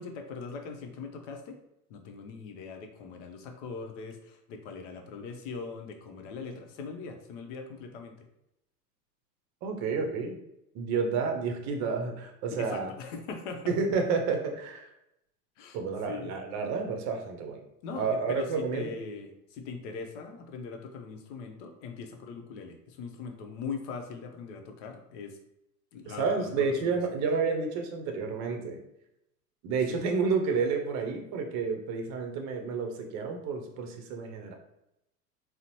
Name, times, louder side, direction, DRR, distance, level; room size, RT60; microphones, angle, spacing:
voice 1, 0.0-1.6 1.9-8.2 12.5-13.8 15.6-15.8 16.0-16.3 17.8-25.4 25.9-27.0 29.9-30.0, left 5 dB, 50° left, 4 dB, 0.7 m, -41 dB
voice 2, 9.6-10.4 10.7-12.9 13.7-14.9 15.7-17.6 18.0-19.0 26.1-28.8 29.6-34.5, right 5 dB, 35° right, 4 dB, 0.7 m, -30 dB
3.8 x 2.1 x 2.9 m, 0.83 s
hypercardioid pair, 90°, 47 cm